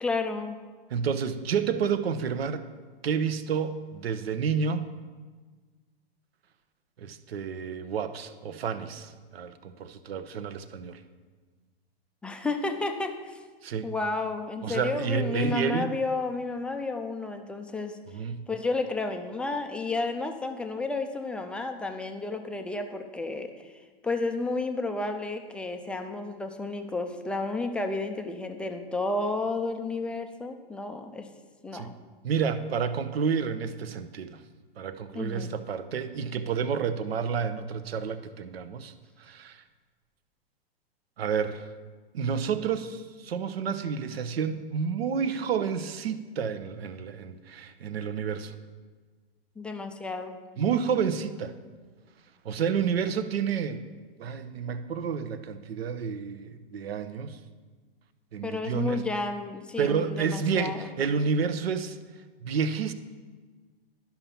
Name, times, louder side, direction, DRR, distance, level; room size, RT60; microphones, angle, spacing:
voice 1, 0.0-0.6 12.2-13.4 13.8-18.0 18.5-23.5 24.0-31.3 31.6-31.9 35.1-35.5 49.6-50.4 58.4-60.9, left 3 dB, 5° left, 6 dB, 0.3 m, -31 dB
voice 2, 0.9-2.6 3.0-4.8 7.0-11.0 13.6-13.9 14.6-16.0 18.1-18.4 31.7-31.9 32.2-34.4 34.8-38.9 39.2-39.6 41.2-41.6 42.1-48.5 50.6-51.6 52.4-53.8 54.2-57.4 58.3-59.0 59.8-62.0 62.4-62.9, right 6 dB, 75° right, 11 dB, 0.8 m, -30 dB
11.0 x 5.7 x 5.8 m, 1.4 s
hypercardioid pair, 120°, 30 cm